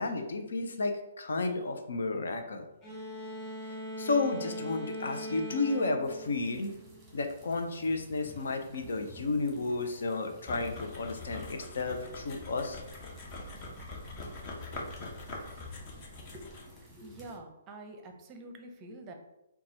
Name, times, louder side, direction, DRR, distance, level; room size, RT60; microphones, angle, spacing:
voice 1, 0.0-2.7 3.6-6.7 7.1-12.8, left 3 dB, 70° left, 6 dB, 0.6 m, -32 dB
sound 1, 2.8-7.3, equal, 20° left, 1.3 m, -41 dB
sound 2, 6.0-17.4, equal, 5° right, 1.3 m, -54 dB
sound 3, 10.5-16.8, left 2 dB, 35° left, 0.9 m, -43 dB
voice 2, 15.9-19.1, right 2 dB, 25° right, 4 dB, 0.6 m, -48 dB
4.0 x 2.3 x 4.3 m, 0.90 s
hypercardioid pair, 135°, 0 cm